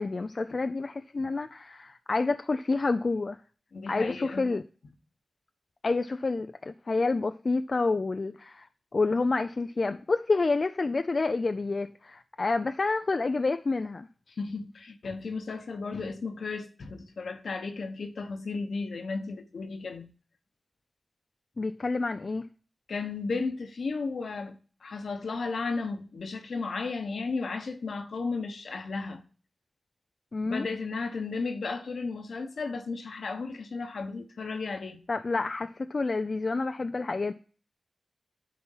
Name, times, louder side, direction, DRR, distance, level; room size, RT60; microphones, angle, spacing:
voice 1, 0.0-3.4 3.9-4.6 5.8-8.7 8.9-14.1 21.6-22.5 30.3-30.7 35.1-37.3, left 3 dB, 50° left, 0.4 m, -28 dB
voice 2, 3.7-4.5 14.4-20.1 22.9-29.2 30.4-35.0, left 4 dB, 80° left, 1.2 m, -34 dB
10.5 x 4.3 x 5.6 m
cardioid pair, 55°, 0 cm